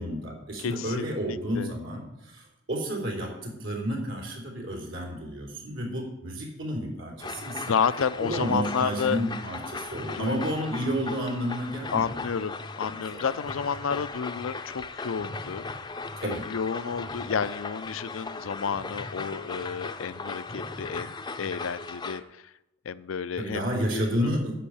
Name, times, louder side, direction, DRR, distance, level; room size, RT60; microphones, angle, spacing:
voice 1, 0.0-7.7 8.2-12.1 12.9-13.3 16.2-16.4 23.4-24.5, equal, 70° right, -1 dB, 3.5 m, -31 dB
voice 2, 0.6-1.7 7.6-9.2 10.1-10.4 11.9-15.9 16.2-22.5 22.9-24.3, left 6 dB, 75° left, 15 dB, 0.5 m, -31 dB
sound 1, 7.2-22.2, left 3 dB, 20° left, 0.6 m, -37 dB
10.0 x 6.2 x 8.6 m, 0.91 s
head